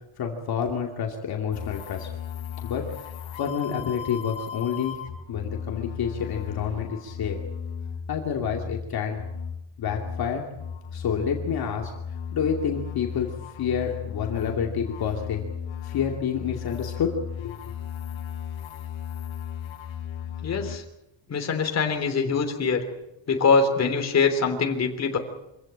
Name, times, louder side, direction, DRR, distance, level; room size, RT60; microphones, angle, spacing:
voice 1, 0.2-2.1 2.6-3.1 3.4-5.0 5.3-7.4 8.1-9.2 9.8-10.4 10.9-11.9 12.3-13.3 13.6-15.4 15.8-17.1 17.4-17.6, left 7 dB, 50° left, 1 dB, 2.7 m, -28 dB
sound 1, 1.5-20.8, left 8 dB, 85° left, 3.3 m, -36 dB
voice 2, 20.4-20.8 21.3-22.8 23.3-25.2, left 5 dB, 35° left, 4 dB, 3.3 m, -23 dB
25.5 x 16.5 x 8.8 m, 0.89 s
cardioid pair, 170°, 46 cm